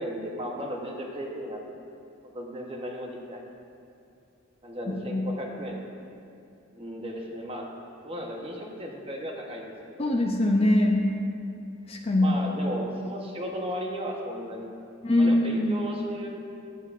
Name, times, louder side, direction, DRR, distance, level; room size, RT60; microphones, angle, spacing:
voice 1, 0.0-1.7 2.2-3.4 4.6-5.9 6.7-7.6 8.0-9.7 10.0-10.1 12.2-14.7 15.2-16.3, equal, 25° right, 0 dB, 0.8 m, -35 dB
voice 2, 4.9-5.2 10.0-11.0 11.9-12.4 15.0-15.8, left 1 dB, 30° left, 1 dB, 0.5 m, -23 dB
11.5 x 8.2 x 2.5 m, 2.6 s
head